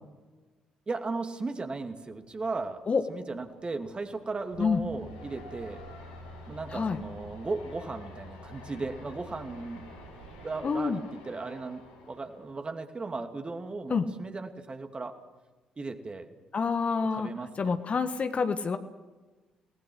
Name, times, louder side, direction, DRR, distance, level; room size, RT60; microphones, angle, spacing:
voice 1, 0.9-2.8 3.1-5.8 6.5-9.8 10.4-11.8 12.1-15.2 15.8-16.3 17.1-17.7, right 3 dB, 30° right, 6 dB, 2.5 m, -36 dB
sound 1, 2.1-12.4, left 3 dB, 80° left, 5.4 m, -52 dB
Truck, 4.5-10.6, equal, 65° right, 2.4 m, -48 dB
voice 2, 10.6-11.0 13.9-14.0 16.5-17.3 17.6-18.8, left 5 dB, 35° left, 9 dB, 1.5 m, -27 dB
29.5 x 19.0 x 6.5 m, 1.2 s
figure-of-eight pair, 45°, 4 cm